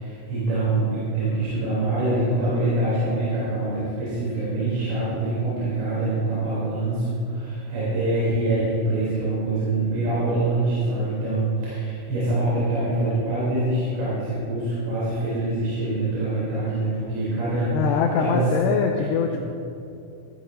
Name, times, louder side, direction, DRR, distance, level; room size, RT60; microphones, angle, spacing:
voice 1, 0.0-18.6 19.3-19.4, right 2 dB, 70° right, -10 dB, 5.5 m, -25 dB
voice 2, 17.7-19.4, left 6 dB, 85° left, 2 dB, 2.5 m, -23 dB
17.0 x 12.0 x 2.7 m, 2.6 s
omnidirectional pair, 5.4 m